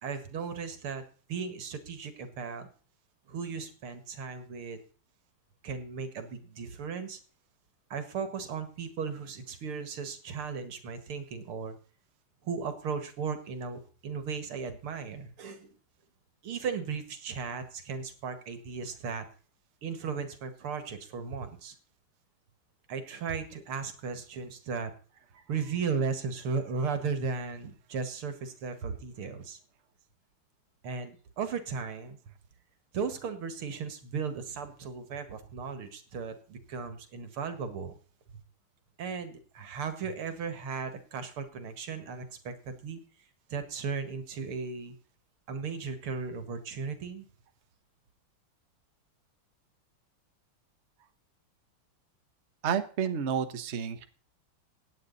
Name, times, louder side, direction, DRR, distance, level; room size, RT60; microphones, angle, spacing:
voice 1, 0.0-1.0 1.3-2.7 3.3-4.8 5.6-7.2 7.9-11.8 12.4-15.7 16.4-19.3 19.8-21.7 22.9-24.9 25.3-29.6 30.8-32.2 32.9-37.9 38.3-38.4 39.0-43.0 43.5-44.9 45.5-47.3, right 5 dB, 85° right, 9 dB, 2.7 m, -36 dB
voice 2, 52.6-54.0, right 7 dB, 40° right, 9 dB, 1.2 m, -30 dB
16.5 x 9.7 x 4.1 m, 0.40 s
omnidirectional pair, 2.3 m